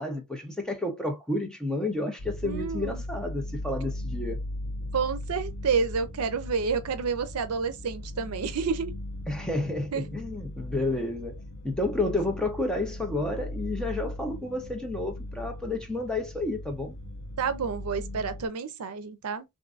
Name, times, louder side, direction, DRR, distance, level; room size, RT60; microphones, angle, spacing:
voice 1, 0.0-4.4 9.3-11.4 11.6-16.9, left 2 dB, 5° left, 0.7 m, -30 dB
sound 1, 2.2-18.5, left 1 dB, 80° left, 0.8 m, -38 dB
voice 2, 2.4-3.0 4.9-8.9 9.9-10.0 17.4-19.4, right 5 dB, 80° right, 0.5 m, -29 dB
3.6 x 2.6 x 2.4 m
head